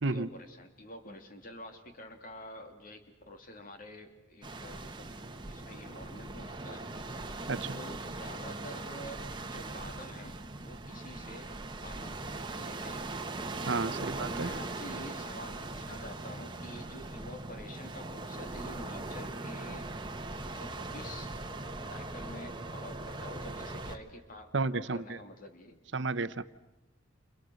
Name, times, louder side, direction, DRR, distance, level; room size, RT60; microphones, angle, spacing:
voice 1, 0.1-5.1 5.5-6.9 7.7-11.5 11.8-12.2 12.6-13.1 13.8-20.1 20.4-21.3 21.9-25.8, left 1 dB, 45° left, 5 dB, 3.2 m, -48 dB
sound 1, 4.4-24.0, right 2 dB, 25° right, 1.6 m, -40 dB
voice 2, 13.6-14.5 24.5-25.2 25.9-26.4, right 3 dB, 65° right, 14 dB, 0.9 m, -32 dB
29.5 x 29.0 x 6.5 m, 0.97 s
head